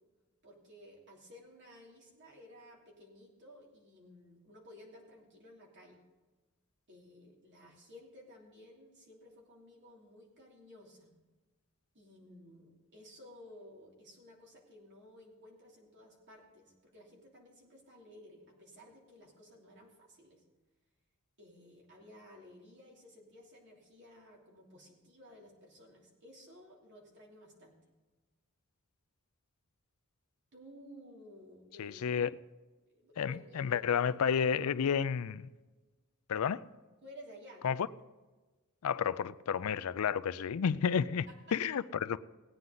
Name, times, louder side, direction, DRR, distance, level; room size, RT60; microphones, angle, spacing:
voice 1, 0.4-6.0 6.9-11.1 11.9-20.4 21.4-27.8 30.5-32.2 32.9-34.5 37.0-37.8 41.3-41.6, left 1 dB, 55° right, 3.0 m, -55 dB
voice 2, 31.8-32.3 33.2-35.5 36.3-36.6 37.6-37.8 38.8-41.3 41.5-42.2, left 7 dB, 75° left, 0.4 m, -31 dB
17.0 x 9.5 x 3.9 m
head